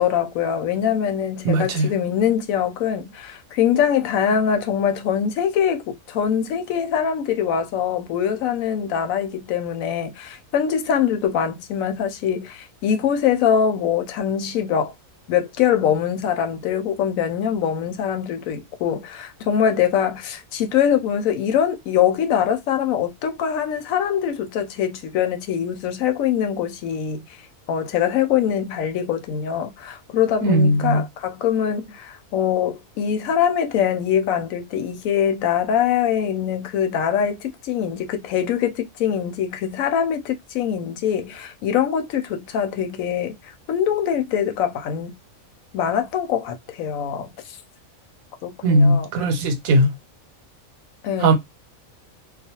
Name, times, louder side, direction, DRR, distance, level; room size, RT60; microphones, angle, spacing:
voice 1, 0.0-14.9 15.3-27.2 27.7-43.4 43.7-45.1 45.7-47.6 48.4-49.3 51.0-51.3, left 8 dB, 80° left, 1.0 m, -23 dB
voice 2, 1.4-1.9 30.4-31.0 48.6-49.9 51.2-51.3, right 1 dB, 90° right, 1.1 m, -18 dB
2.4 x 2.3 x 2.7 m
omnidirectional pair, 1.4 m